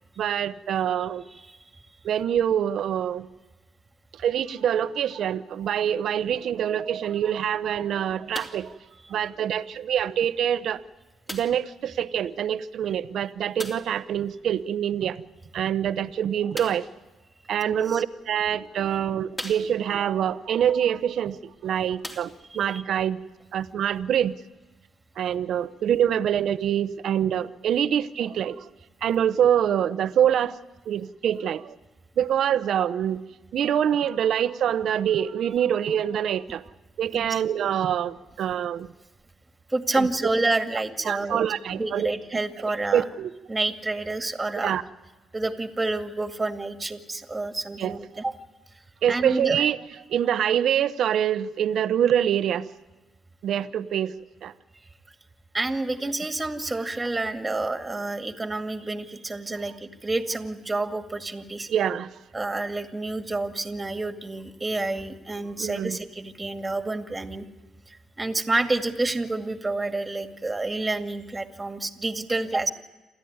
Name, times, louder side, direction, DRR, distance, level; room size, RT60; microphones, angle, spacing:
voice 1, 0.2-1.2 2.0-3.3 4.2-8.7 9.1-10.8 11.3-15.2 15.5-16.9 17.5-23.2 23.5-24.3 25.2-28.6 29.0-30.6 30.9-31.8 32.2-33.2 33.5-36.6 37.0-38.9 40.0-40.1 41.0-42.1 42.9-43.3 44.6-44.8 47.8-48.2 49.0-49.8 50.1-52.6 53.4-54.1 54.4-54.5 61.7-62.1 65.6-66.0, right 9 dB, 70° right, 13 dB, 0.9 m, -25 dB
sound 1, 8.3-8.7 9.6-9.7 11.3-11.7 13.6-14.0 16.5-17.0 17.9-18.0 18.6-18.7 19.3-20.0 21.3-21.4 21.9-22.7 23.5-23.6, equal, 15° left, 3.2 m, -39 dB
voice 2, 17.6-18.0 22.5-22.8 37.1-37.4 39.7-41.4 41.7-43.0 43.5-44.7 45.3-48.3 49.1-49.6 55.5-61.7 62.3-67.5 67.9-72.7, right 2 dB, 20° right, 6 dB, 2.2 m, -29 dB
28.0 x 13.5 x 9.6 m, 1.2 s
cardioid pair, 90°, 0 cm